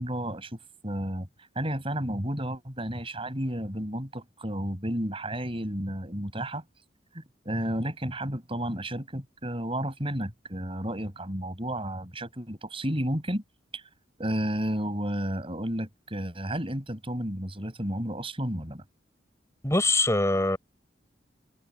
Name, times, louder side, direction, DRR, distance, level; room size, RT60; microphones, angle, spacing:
voice 1, 0.0-6.6 7.1-13.4 13.7-13.8 14.2-18.8, right 1 dB, 30° right, 6.6 m, -32 dB
voice 2, 19.6-20.6, left 2 dB, 15° left, 7.8 m, -23 dB
head